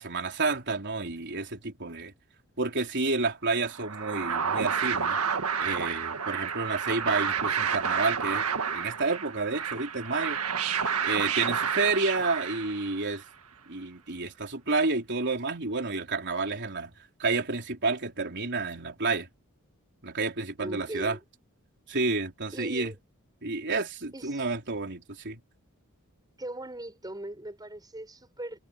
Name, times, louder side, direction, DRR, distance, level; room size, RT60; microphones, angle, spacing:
voice 1, 0.0-2.1 2.6-5.2 5.6-10.4 11.0-13.2 13.7-19.3 20.0-21.2 21.9-22.9 23.4-25.4, right 3 dB, 55° right, 4.1 m, -30 dB
sound 1, 3.7-13.1, right 6 dB, 80° right, 1.8 m, -30 dB
voice 2, 20.6-21.2 22.5-22.9 24.1-24.5 26.4-28.6, right 1 dB, 20° right, 7.6 m, -40 dB
head